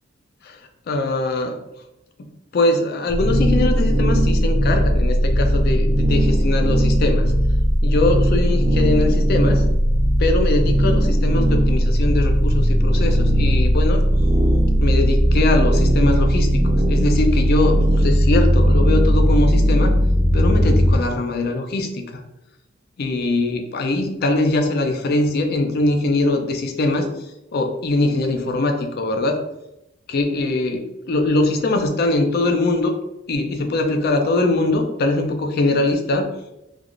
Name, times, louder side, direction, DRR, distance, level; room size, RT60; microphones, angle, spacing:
voice 1, 0.9-1.6 2.2-7.3 7.8-9.6 10.2-14.0 14.8-19.9 20.3-22.2 23.0-27.1 27.5-29.4 30.1-32.9 33.3-36.3, left 2 dB, 50° left, 5 dB, 0.4 m, -22 dB
sound 1, 3.1-21.0, equal, 35° right, 0.4 m, -17 dB
3.3 x 2.3 x 2.4 m, 0.89 s
head